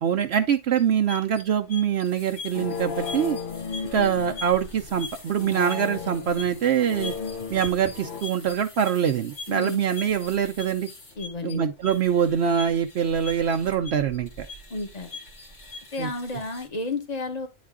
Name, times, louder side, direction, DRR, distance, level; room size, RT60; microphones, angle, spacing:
voice 1, 0.0-3.4 3.9-7.1 7.5-10.9 11.4-14.5 16.0-16.1, right 8 dB, 65° right, 0.8 m, -24 dB
sound 1, 0.8-16.7, left 3 dB, 70° left, 2.2 m, -42 dB
sound 2, 2.5-8.2, left 5 dB, 50° left, 0.8 m, -35 dB
voice 2, 9.5-9.8 11.2-11.6 14.7-15.1 15.9-17.5, left 2 dB, 35° left, 1.4 m, -31 dB
9.6 x 4.1 x 3.6 m
omnidirectional pair, 1.3 m